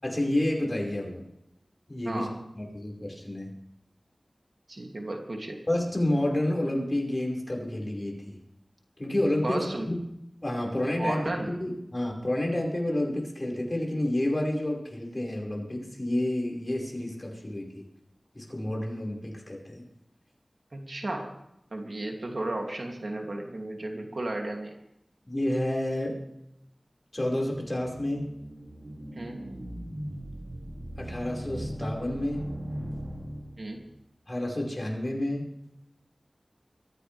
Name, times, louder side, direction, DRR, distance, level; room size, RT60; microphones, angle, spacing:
voice 1, 0.0-1.2 1.9-2.3 2.5-3.5 5.7-8.4 9.0-9.9 10.4-17.8 18.3-19.8 25.3-26.2 27.1-28.2 31.0-32.5 34.3-35.5, left 1 dB, 40° left, -1 dB, 5.4 m, -29 dB
voice 2, 4.7-5.6 9.4-9.9 11.0-11.5 20.7-21.3 21.7-24.8 29.1-29.5 33.6-33.8, right 1 dB, 70° right, 1 dB, 2.8 m, -34 dB
sound 1, 27.6-33.9, equal, 55° right, 2.7 m, -39 dB
23.0 x 15.0 x 3.5 m, 0.80 s
wide cardioid pair, 45°, 0 cm